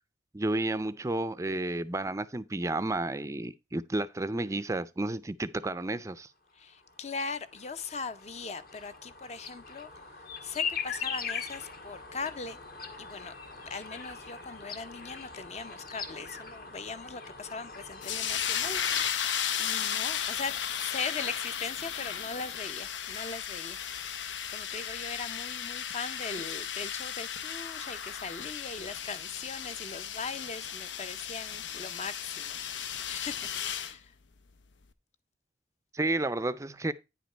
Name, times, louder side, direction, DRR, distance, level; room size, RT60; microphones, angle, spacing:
voice 1, 0.3-6.3 35.9-36.9, right 2 dB, 15° right, 0.4 m, -31 dB
voice 2, 6.5-12.6 13.0-13.3 13.7-34.1, left 4 dB, 35° left, 0.6 m, -40 dB
sound 1, 6.8-19.1, left 6 dB, 50° left, 1.5 m, -41 dB
sound 2, 18.0-33.9, left 9 dB, 90° left, 0.7 m, -35 dB
9.7 x 5.1 x 4.4 m
head